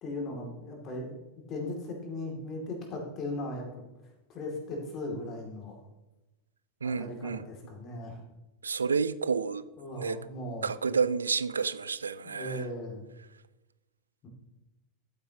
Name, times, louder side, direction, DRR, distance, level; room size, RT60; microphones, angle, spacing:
voice 1, 0.0-3.8 4.3-5.8 6.8-8.2 9.8-10.7 12.2-13.0 14.2-14.3, left 1 dB, 35° left, 2 dB, 2.6 m, -38 dB
voice 2, 6.8-7.4 8.6-9.7 10.0-10.2 10.6-12.6, right 5 dB, 75° right, 16 dB, 0.4 m, -30 dB
12.0 x 9.1 x 3.0 m, 1.0 s
figure-of-eight pair, 90°, 0 cm